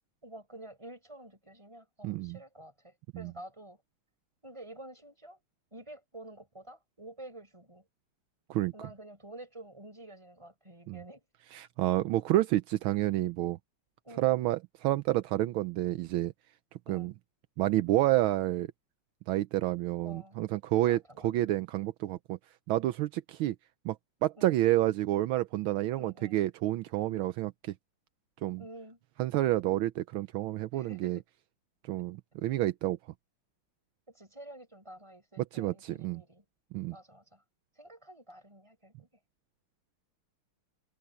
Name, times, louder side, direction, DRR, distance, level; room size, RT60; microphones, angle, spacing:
voice 1, 0.2-3.8 4.4-5.4 5.7-7.9 8.7-11.2 14.0-14.4 16.9-17.1 20.0-20.4 20.8-21.3 24.3-24.6 26.0-26.4 28.6-29.0 30.7-31.2 34.1-36.4 36.9-37.4 37.8-39.1, right 1 dB, 15° right, 5.9 m, -49 dB
voice 2, 2.0-2.4 3.1-3.3 8.5-8.7 10.9-11.0 11.5-13.6 14.2-16.3 16.9-17.1 17.6-18.7 19.3-22.4 22.7-23.6 23.8-24.0 24.2-27.7 28.4-28.6 29.2-31.2 31.8-33.0 35.5-36.2 36.7-37.0, right 15 dB, 80° right, 1.4 m, -29 dB
omnidirectional pair, 2.4 m